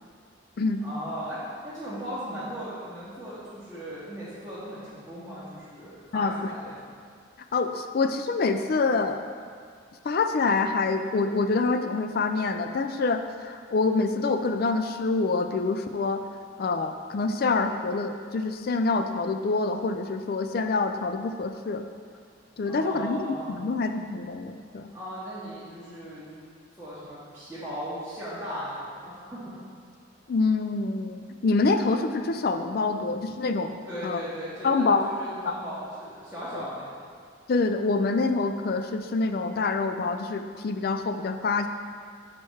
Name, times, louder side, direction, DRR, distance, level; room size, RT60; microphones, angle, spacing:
voice 1, 0.8-6.9 22.7-23.5 24.9-26.4 26.8-29.6 33.9-37.1, equal, 10° right, -13 dB, 1.4 m, -37 dB
voice 2, 7.5-9.2 10.0-16.2 16.6-21.8 22.6-24.9 30.3-33.7 34.0-34.2 34.6-35.1 35.4-35.5 36.5-36.6 37.5-41.7, left 3 dB, 50° left, 7 dB, 0.4 m, -26 dB
6.4 x 4.4 x 4.6 m, 2.1 s
head